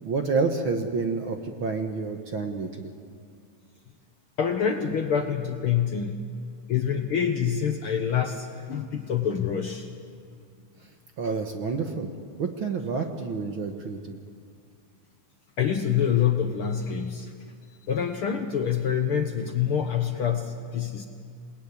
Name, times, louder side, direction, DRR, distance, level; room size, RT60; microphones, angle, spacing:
voice 1, 0.0-2.9 10.8-10.9 11.2-12.1 12.4-14.2, right 4 dB, 50° right, 4 dB, 1.7 m, -29 dB
voice 2, 4.4-6.3 6.7-9.9 15.6-17.3 17.9-21.1, left 8 dB, 60° left, 5 dB, 1.6 m, -26 dB
28.0 x 19.0 x 9.8 m, 2.3 s
omnidirectional pair, 3.6 m